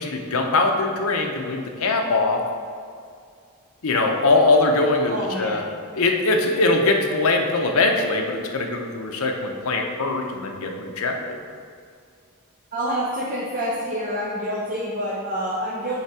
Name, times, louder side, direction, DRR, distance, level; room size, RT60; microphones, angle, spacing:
voice 1, 0.0-2.4 3.8-5.6 5.9-11.4, left 3 dB, 75° left, 3 dB, 0.7 m, -22 dB
voice 2, 5.1-5.7 12.7-16.0, equal, 40° right, -6 dB, 0.8 m, -27 dB
7.2 x 3.4 x 4.7 m, 2.2 s
head